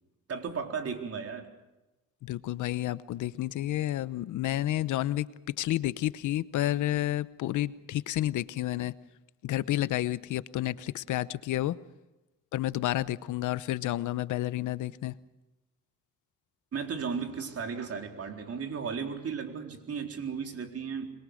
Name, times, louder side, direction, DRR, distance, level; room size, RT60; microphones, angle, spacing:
voice 1, 0.3-1.5 16.7-21.1, right 6 dB, 50° right, 4 dB, 4.1 m, -35 dB
voice 2, 2.2-8.9 9.4-11.7 12.5-15.1, left 14 dB, 80° left, 16 dB, 0.9 m, -30 dB
26.0 x 22.0 x 6.5 m, 1.0 s
cardioid pair, 90°, 30 cm